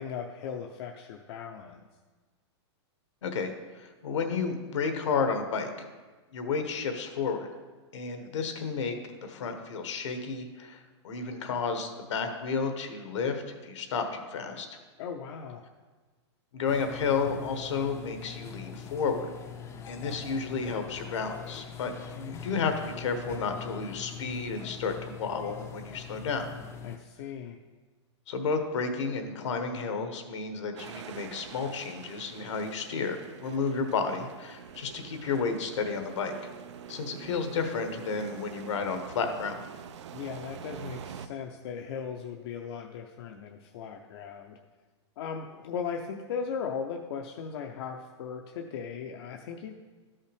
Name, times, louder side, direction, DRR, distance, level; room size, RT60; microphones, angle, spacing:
voice 1, 0.0-1.8 15.0-15.6 26.8-27.6 40.1-44.6 45.2-49.8, left 6 dB, 60° left, 2 dB, 0.6 m, -37 dB
voice 2, 3.2-5.7 6.3-7.5 7.9-14.8 16.5-19.3 19.9-26.5 28.3-36.5 36.9-39.6, left 5 dB, 80° left, 6 dB, 1.1 m, -32 dB
sound 1, 16.7-27.0, left 7 dB, 20° left, 0.5 m, -43 dB
sound 2, 30.8-41.3, right 8 dB, 75° right, 0.5 m, -45 dB
12.0 x 5.6 x 3.4 m, 1.3 s
hypercardioid pair, 145°, 15 cm